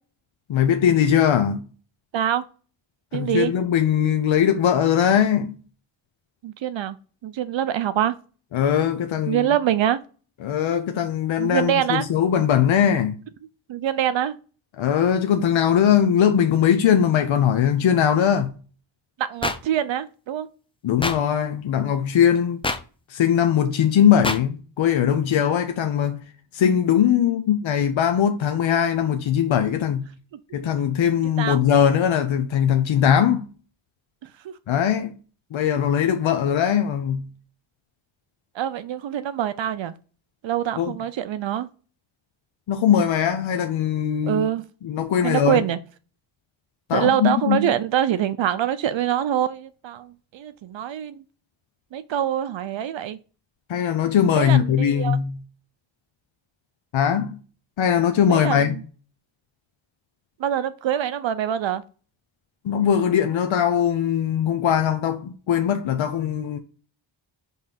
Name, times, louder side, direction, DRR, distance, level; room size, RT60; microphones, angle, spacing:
voice 1, 0.5-1.6 3.1-5.5 8.5-9.5 10.4-13.2 14.8-18.6 20.8-22.6 23.1-26.2 26.5-30.1 30.5-33.5 34.7-35.1 35.5-37.3 40.8-41.0 42.7-44.5 44.8-45.6 46.9-47.7 53.7-55.4 56.9-57.4 57.8-58.8 62.6-66.6, left 9 dB, 90° left, 0.7 m, -20 dB
voice 2, 2.1-2.4 3.1-3.5 6.4-7.0 7.2-8.2 9.3-10.0 11.4-12.1 13.7-14.3 19.2-20.5 31.4-31.6 34.2-34.5 38.5-39.9 40.4-41.7 44.2-44.6 45.2-45.8 46.9-51.2 51.9-53.2 54.4-55.2 58.3-58.7 60.4-61.8, right 10 dB, 75° right, 0.6 m, -24 dB
sound 1, 19.4-19.6 21.0-21.2 22.6-22.8 24.2-24.4, left 3 dB, 10° left, 0.5 m, -24 dB
5.4 x 3.7 x 5.8 m
wide cardioid pair, 155°, 46 cm